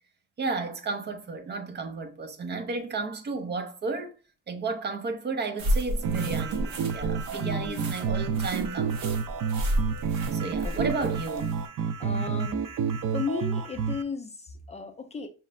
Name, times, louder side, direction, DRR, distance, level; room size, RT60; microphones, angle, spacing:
voice 1, 0.4-4.2 4.5-9.1 10.3-11.5, right 4 dB, 35° right, 0.6 m, -33 dB
sound 1, 5.6-11.7, equal, 60° right, 0.9 m, -32 dB
sound 2, 6.0-14.0, right 6 dB, 85° right, 0.6 m, -30 dB
voice 2, 7.3-8.0 10.6-11.2 12.0-12.7 13.1-15.3, left 5 dB, 20° left, 0.4 m, -35 dB
5.6 x 3.2 x 2.4 m
cardioid pair, 175°, 31 cm